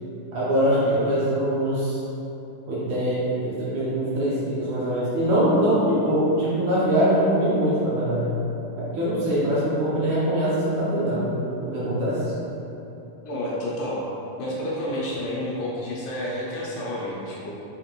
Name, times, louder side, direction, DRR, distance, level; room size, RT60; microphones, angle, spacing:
voice 1, 0.3-2.0 2.7-8.3 8.8-12.2, equal, 70° right, -9 dB, 1.9 m, -23 dB
voice 2, 0.8-1.1 13.3-14.0 14.4-17.5, left 1 dB, 80° left, -5 dB, 2.0 m, -30 dB
5.9 x 2.9 x 2.9 m, 2.9 s
omnidirectional pair, 4.0 m